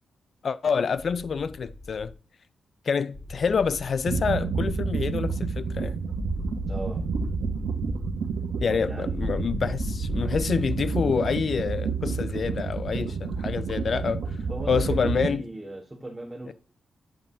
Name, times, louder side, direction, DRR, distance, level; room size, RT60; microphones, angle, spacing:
voice 1, 0.4-2.1 2.9-6.0 8.6-14.2 14.7-15.4 16.5-16.6, left 6 dB, 60° left, 0.4 m, -27 dB
sound 1, 1.0-2.1 3.1-5.2 6.2-8.2 9.1-10.4, left 2 dB, 10° left, 2.4 m, -36 dB
sound 2, 4.1-15.3, right 5 dB, 80° right, 1.1 m, -30 dB
voice 2, 6.7-7.0 8.8-9.5 14.5-16.5, right 1 dB, 15° right, 1.2 m, -37 dB
9.0 x 5.5 x 2.7 m
cardioid pair, 70°, 0 cm